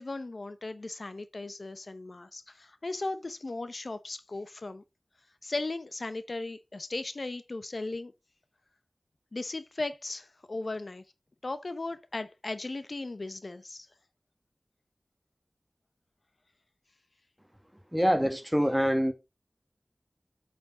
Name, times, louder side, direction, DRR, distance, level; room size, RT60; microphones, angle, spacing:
voice 1, 0.0-4.8 5.4-8.1 9.3-11.0 11.4-13.9, left 2 dB, 65° left, 0.7 m, -37 dB
voice 2, 17.9-19.1, equal, 5° right, 1.6 m, -25 dB
8.7 x 6.0 x 3.7 m
wide cardioid pair, 50°, 0 cm